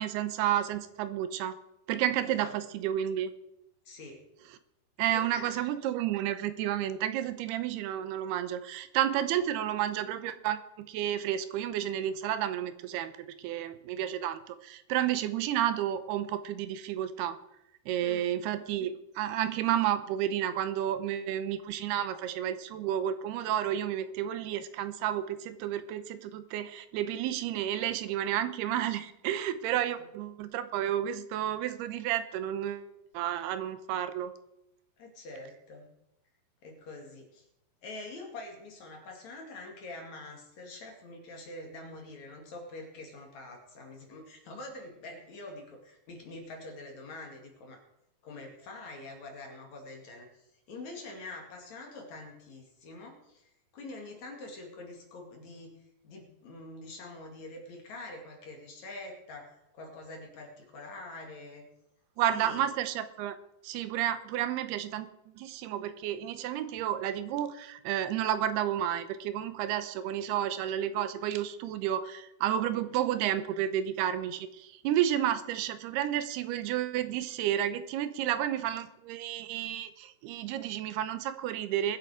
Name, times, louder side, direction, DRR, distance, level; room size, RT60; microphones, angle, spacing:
voice 1, 0.0-1.6 1.9-3.3 5.0-13.1 13.4-17.4 17.9-32.9 33.1-34.3 62.2-63.4 63.6-65.1 65.4-82.0, right 11 dB, 85° right, 12 dB, 2.8 m, -31 dB
voice 2, 2.2-2.5 3.8-4.2 5.0-5.6 18.0-18.3 29.7-29.8 35.0-35.9 36.6-37.5 37.8-47.8 48.2-53.4 53.7-55.8 56.0-61.6 62.3-62.6 72.7-72.8, left 2 dB, 50° left, 2 dB, 3.2 m, -45 dB
21.5 x 7.8 x 4.9 m, 0.84 s
omnidirectional pair, 4.6 m